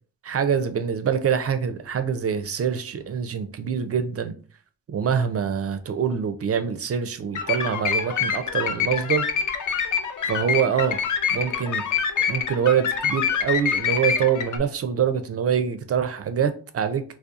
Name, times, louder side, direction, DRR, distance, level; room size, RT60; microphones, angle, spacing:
voice 1, 0.2-4.3 4.9-9.3 10.3-11.0 11.3-11.8 12.3-17.0, right 7 dB, 35° right, 0.4 m, -25 dB
sound 1, 7.4-14.6, left 7 dB, 45° left, 0.5 m, -26 dB
2.8 x 2.1 x 2.3 m
supercardioid pair, 55°, 44 cm